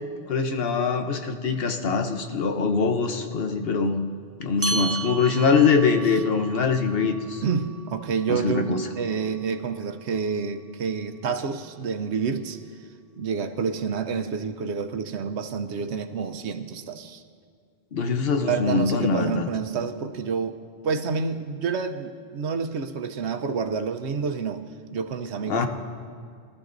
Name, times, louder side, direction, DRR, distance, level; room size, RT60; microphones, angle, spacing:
voice 1, 0.3-4.1 4.4-7.4 8.3-8.8 17.9-19.5 25.5-25.7, left 5 dB, 65° left, 5 dB, 1.1 m, -23 dB
sound 1, 4.6-9.4, right 3 dB, 20° right, 0.5 m, -35 dB
voice 2, 4.6-4.9 7.4-12.6 13.2-17.2 18.4-25.7, right 5 dB, 90° right, 8 dB, 1.0 m, -29 dB
22.0 x 13.0 x 2.6 m, 2.2 s
omnidirectional pair, 1.1 m